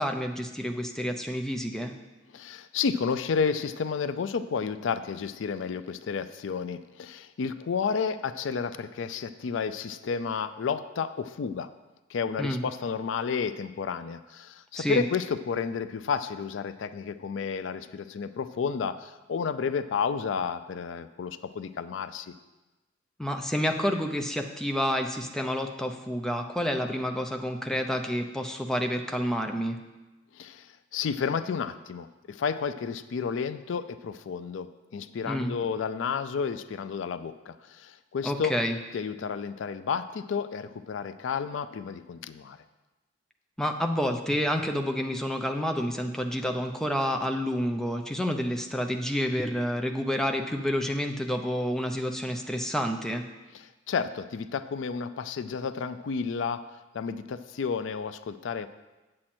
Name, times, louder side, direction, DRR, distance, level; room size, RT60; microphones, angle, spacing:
voice 1, 0.0-1.9 12.4-12.6 14.8-15.0 23.2-29.8 35.3-35.5 38.2-38.8 43.6-53.2, equal, 5° left, 4 dB, 0.6 m, -29 dB
voice 2, 2.3-11.7 12.1-22.3 30.3-38.5 38.9-42.6 53.9-56.6 56.9-58.7, left 6 dB, 75° left, 12 dB, 0.4 m, -31 dB
8.8 x 7.5 x 4.3 m, 1.1 s
head